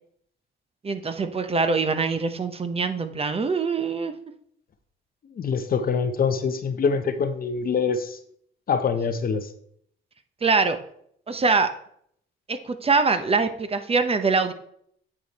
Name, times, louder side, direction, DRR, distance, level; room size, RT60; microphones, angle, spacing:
voice 1, 0.8-4.1 10.4-10.8 11.3-11.7 12.5-14.5, right 4 dB, 30° right, 9 dB, 0.8 m, -23 dB
voice 2, 5.3-8.2 8.7-9.5, left 5 dB, 45° left, 10 dB, 0.8 m, -24 dB
8.5 x 4.9 x 4.1 m, 0.67 s
cardioid pair, 90°, 20 cm